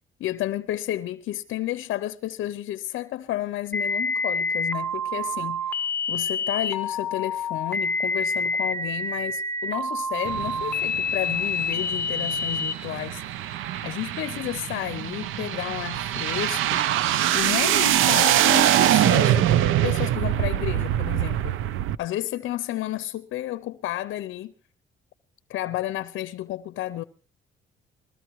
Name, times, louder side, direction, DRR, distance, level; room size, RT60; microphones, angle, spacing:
voice 1, 0.2-5.8 6.1-21.6 22.0-24.5 25.5-27.0, left 14 dB, 75° left, 0.6 m, -32 dB
sound 1, 3.7-12.7, left 3 dB, 10° left, 1.5 m, -27 dB
sound 2, 10.2-22.0, right 12 dB, 85° right, 0.6 m, -24 dB
20.5 x 14.5 x 3.0 m
cardioid pair, 90°, 20 cm